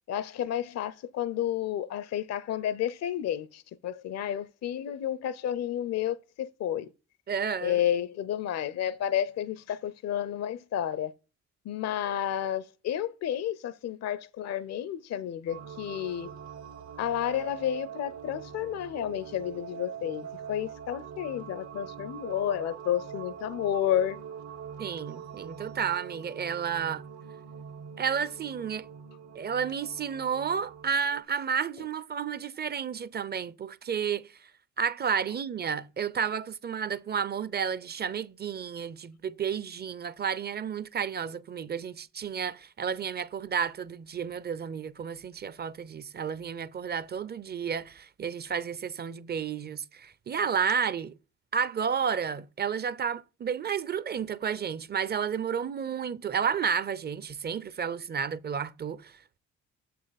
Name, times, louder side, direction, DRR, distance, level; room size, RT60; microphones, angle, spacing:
voice 1, 0.1-6.9 7.6-11.1 11.7-16.3 17.0-24.2, left 10 dB, 60° left, 0.6 m, -31 dB
voice 2, 7.3-7.8 24.8-27.0 28.0-28.9 29.3-34.3 34.8-51.1 51.5-59.2, right 7 dB, 35° right, 0.5 m, -31 dB
sound 1, 15.5-31.2, right 7 dB, 65° right, 1.1 m, -44 dB
7.2 x 5.5 x 4.0 m
cardioid pair, 90°, 30 cm